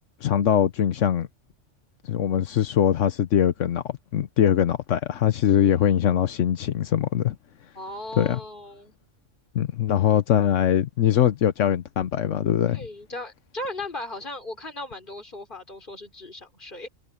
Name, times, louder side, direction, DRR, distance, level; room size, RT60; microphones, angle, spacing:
voice 1, 0.2-1.3 2.0-3.8 4.1-7.4 8.2-8.4 9.5-12.8, left 10 dB, 80° left, 1.2 m, -22 dB
voice 2, 7.7-8.9 12.7-16.9, left 1 dB, 45° left, 4.9 m, -37 dB
omnidirectional pair, 1.3 m